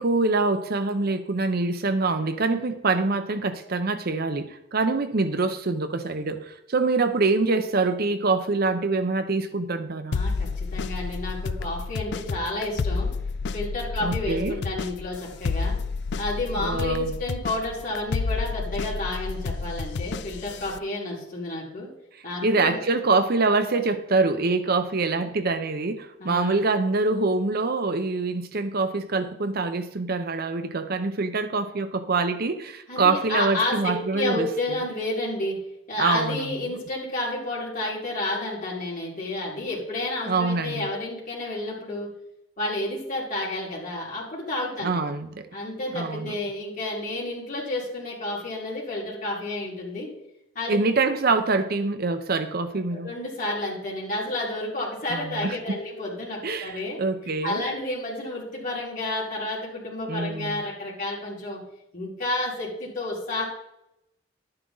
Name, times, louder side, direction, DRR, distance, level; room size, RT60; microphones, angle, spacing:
voice 1, 0.0-10.2 14.0-14.6 16.6-17.1 22.4-34.8 36.0-36.5 40.3-40.9 44.8-45.5 45.9-46.3 50.7-53.1 55.1-55.8 56.4-57.6 60.1-60.6, right 3 dB, 50° right, 10 dB, 0.7 m, -25 dB
sound 1, 10.1-20.8, left 4 dB, 60° left, 0.4 m, -30 dB
voice 2, 10.1-13.1 13.5-15.7 16.2-21.9 22.2-22.8 26.2-26.6 32.9-35.5 35.9-42.1 42.6-44.9 45.5-50.1 50.5-50.8 52.9-57.0 57.4-61.6 61.9-63.4, left 2 dB, 40° left, -5 dB, 4.5 m, -30 dB
11.5 x 9.7 x 3.9 m, 0.84 s
head